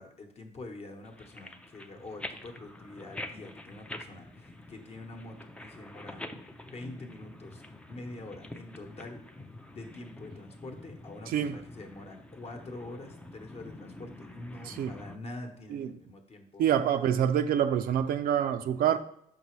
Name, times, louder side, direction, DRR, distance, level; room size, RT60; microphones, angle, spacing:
voice 1, 0.0-6.2 6.6-7.6 7.9-9.2 9.7-16.7, left 2 dB, 35° left, 1.0 m, -45 dB
sound 1, 1.0-15.2, left 1 dB, 5° left, 0.4 m, -46 dB
voice 2, 11.3-11.6 14.7-14.9 15.7-15.9 16.6-19.0, right 9 dB, 60° right, 0.4 m, -26 dB
5.8 x 5.4 x 3.1 m
cardioid pair, 110°, 17 cm